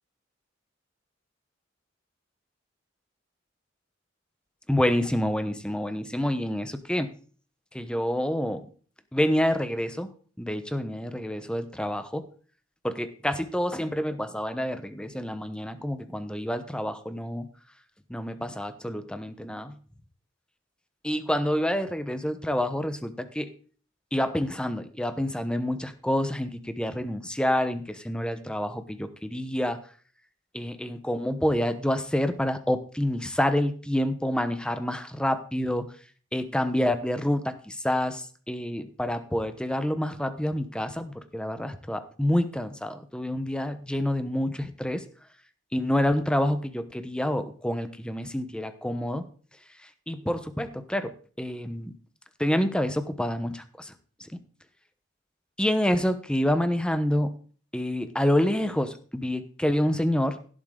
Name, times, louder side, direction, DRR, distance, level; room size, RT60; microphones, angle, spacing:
voice 1, 4.7-7.1 7.7-8.6 9.1-10.1 10.4-12.2 12.8-17.5 18.1-19.8 21.0-23.5 24.1-29.8 30.5-35.9 36.3-45.0 45.7-49.2 50.1-51.1 51.4-51.9 52.4-53.9 54.2-54.3 55.6-57.3 57.7-60.4, left 1 dB, 5° left, 10 dB, 0.9 m, -28 dB
16.5 x 7.6 x 3.8 m, 0.42 s
head